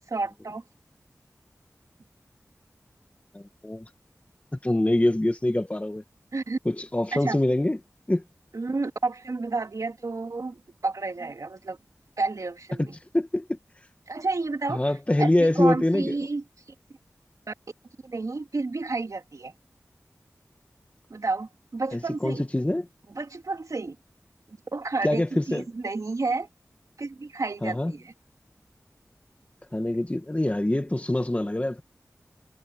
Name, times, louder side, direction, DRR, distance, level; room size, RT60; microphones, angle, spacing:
voice 1, 0.1-0.6 6.3-6.6 7.1-7.4 8.5-11.8 12.2-12.9 14.1-14.8 15.2-16.4 17.5-17.6 18.0-19.5 21.1-22.4 23.1-24.0 24.7-26.5 27.0-28.1, right 3 dB, 75° right, 3.3 m, -30 dB
voice 2, 3.3-3.8 4.6-6.0 6.6-7.8 8.1-8.2 12.8-12.9 13.1-13.6 14.7-16.1 21.9-22.9 25.0-25.6 27.6-27.9 29.7-31.8, left 1 dB, 25° left, 1.4 m, -24 dB
wide cardioid pair, 50°, 6 cm